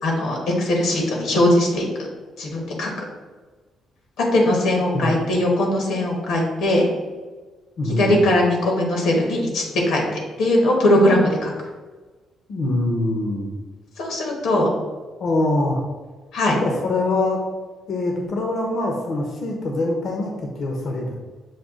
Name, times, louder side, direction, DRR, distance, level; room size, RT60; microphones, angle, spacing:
voice 1, 0.0-1.8 2.4-2.9 4.3-6.9 7.8-10.0 10.4-11.5 14.0-14.7 16.3-16.6, left 1 dB, 85° left, 0 dB, 1.1 m, -20 dB
voice 2, 7.8-8.1 12.5-13.6 15.2-15.8 16.6-17.4 17.9-21.2, left 2 dB, 65° left, 1 dB, 0.7 m, -24 dB
6.4 x 2.3 x 3.6 m, 1.3 s
cardioid pair, 90°, 0 cm